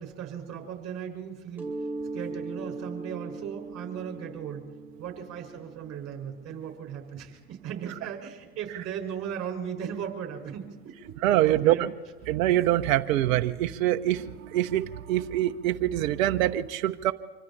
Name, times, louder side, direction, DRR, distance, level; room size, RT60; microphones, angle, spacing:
voice 1, 0.0-1.7 2.1-4.6 5.0-11.8, right 8 dB, 35° right, 3 dB, 5.5 m, -37 dB
Mallet percussion, 1.6-7.1, right 3 dB, 5° right, 4.8 m, -39 dB
voice 2, 11.2-11.9 12.3-17.1, right 13 dB, 60° right, 10 dB, 1.1 m, -24 dB
26.0 x 25.0 x 4.3 m, 1.3 s
hypercardioid pair, 90°, 46 cm